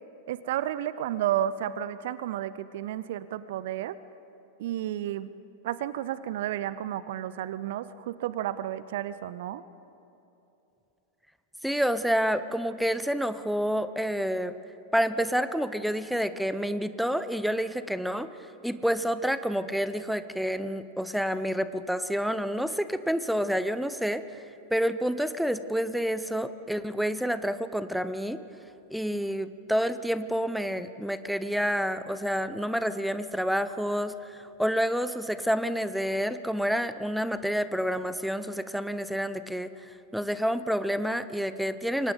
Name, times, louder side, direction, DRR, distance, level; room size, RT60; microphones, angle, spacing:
voice 1, 0.3-4.0 4.6-5.3 5.6-9.6, right 12 dB, 55° right, 16 dB, 0.6 m, -32 dB
voice 2, 11.6-14.6 14.9-18.3 18.6-24.4 24.7-28.4 28.9-42.1, equal, ahead, 13 dB, 0.8 m, -29 dB
28.5 x 24.0 x 4.0 m, 2.9 s
figure-of-eight pair, 90°, 0 cm